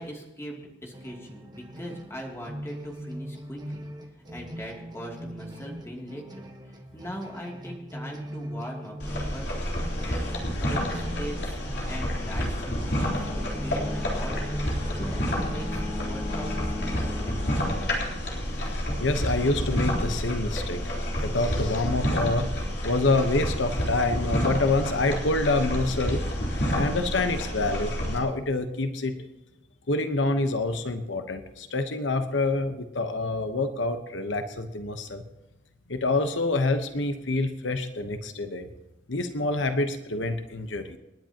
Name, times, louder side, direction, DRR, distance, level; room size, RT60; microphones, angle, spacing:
voice 1, 0.0-3.9 4.3-9.7 10.0-14.5 14.9-17.9, equal, 15° left, -1 dB, 2.7 m, -40 dB
sound 1, 0.9-17.0, equal, 20° right, 1.2 m, -40 dB
sound 2, 9.0-28.2, equal, 60° left, 3.8 m, -29 dB
Bowed string instrument, 12.7-18.5, left 3 dB, 40° left, 6.5 m, -39 dB
voice 2, 18.6-20.9 21.2-26.2 26.7-29.3 29.9-35.2 35.9-38.7 39.1-41.0, left 2 dB, 80° left, 7 dB, 1.1 m, -27 dB
28.5 x 10.5 x 3.0 m, 1.0 s
head